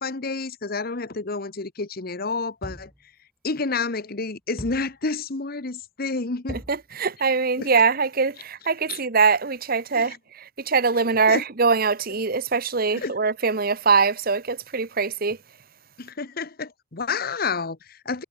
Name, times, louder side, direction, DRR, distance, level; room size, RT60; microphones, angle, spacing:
voice 1, 0.0-2.9 3.4-6.6 7.6-7.7 8.9-9.0 9.9-10.2 11.3-11.4 12.9-13.1 16.0-18.2, left 4 dB, 55° left, 1.2 m, -29 dB
sound 1, 2.6-3.1 4.6-5.0 6.5-6.9, equal, ahead, 1.0 m, -39 dB
voice 2, 6.5-15.4, right 4 dB, 50° right, 1.2 m, -23 dB
head